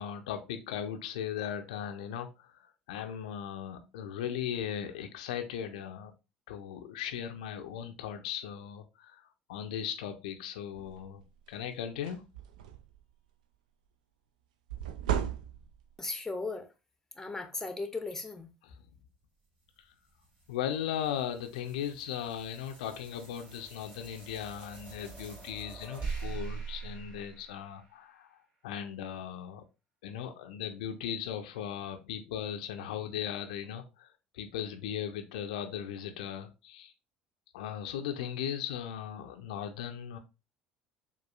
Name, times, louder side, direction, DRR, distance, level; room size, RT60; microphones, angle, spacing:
voice 1, 0.0-6.1 6.5-9.2 9.5-11.2 11.5-12.3 18.6-18.8 20.5-28.4 28.6-29.6 30.0-36.9 37.5-40.2, left 9 dB, 65° left, 0.5 m, -38 dB
sound 1, 10.8-11.0 11.5-11.6 11.9-13.0 14.7-15.9, right 9 dB, 70° right, 0.4 m, -35 dB
voice 2, 16.0-16.7 17.2-18.5, left 3 dB, 10° left, 0.7 m, -36 dB
sound 2, 19.6-28.2, right 5 dB, 30° right, 2.1 m, -44 dB
6.8 x 2.4 x 2.3 m
figure-of-eight pair, 60°, 4 cm